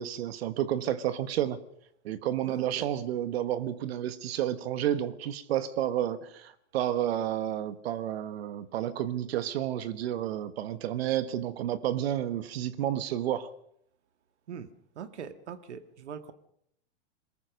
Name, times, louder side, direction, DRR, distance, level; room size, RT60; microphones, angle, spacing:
voice 1, 0.0-1.6 2.0-13.5, right 11 dB, 60° right, 1.5 m, -31 dB
voice 2, 2.5-2.9 14.5-14.7 15.0-16.3, right 7 dB, 75° right, 1.8 m, -42 dB
22.5 x 19.5 x 6.6 m
hypercardioid pair, 120°, 34 cm